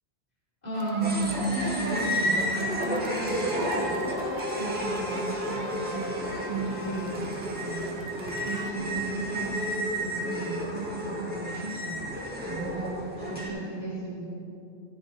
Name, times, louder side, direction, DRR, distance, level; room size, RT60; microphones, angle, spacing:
voice 1, 0.6-4.0 4.5-14.3, right 2 dB, 40° left, -9 dB, 2.9 m, -34 dB
sound 1, 0.7-8.7, right 5 dB, 70° right, 0.8 m, -43 dB
sound 2, 1.0-13.5, equal, 10° right, 1.6 m, -32 dB
Wind instrument woodwind instrument, 3.0-7.2, left 3 dB, 70° left, 1.1 m, -40 dB
16.0 x 8.3 x 4.0 m, 2.7 s
omnidirectional pair, 1.1 m